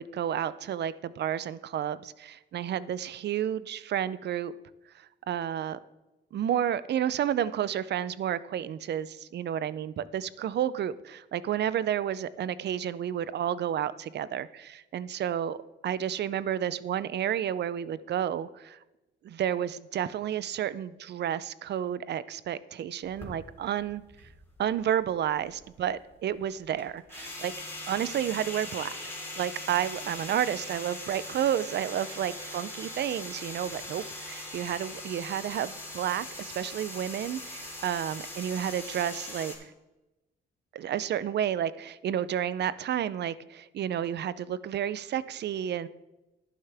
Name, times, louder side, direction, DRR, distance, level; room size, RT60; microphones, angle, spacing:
voice 1, 0.0-4.5 5.3-5.8 6.3-15.6 15.8-18.8 19.2-24.0 24.6-27.5 27.9-39.7 40.7-45.9, right 10 dB, 60° right, 17 dB, 0.6 m, -31 dB
sound 1, 23.0-24.8 25.1-39.5, left 1 dB, 10° left, 4.0 m, -41 dB
11.0 x 10.0 x 3.5 m, 1.0 s
cardioid pair, 90°, 20 cm